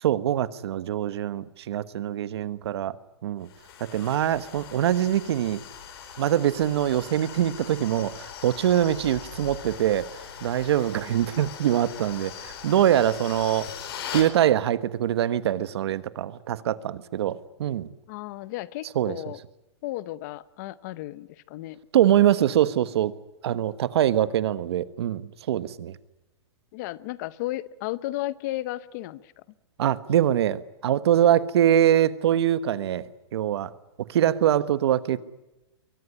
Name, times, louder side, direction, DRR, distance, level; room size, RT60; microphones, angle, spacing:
voice 1, 0.0-3.0 3.2-3.5 3.8-5.6 6.2-10.1 10.4-13.7 14.1-17.9 18.9-19.1 21.9-23.1 23.4-25.9 29.8-33.0 33.3-33.7 34.1-35.2, right 11 dB, 65° right, 15 dB, 1.3 m, -23 dB
sound 1, 3.5-14.3, left 8 dB, 55° left, 4.9 m, -41 dB
voice 2, 18.1-19.4 19.8-21.8 26.7-29.3, left 16 dB, 40° left, 18 dB, 0.8 m, -34 dB
23.0 x 18.5 x 9.9 m, 0.99 s
hypercardioid pair, 155°, 15 cm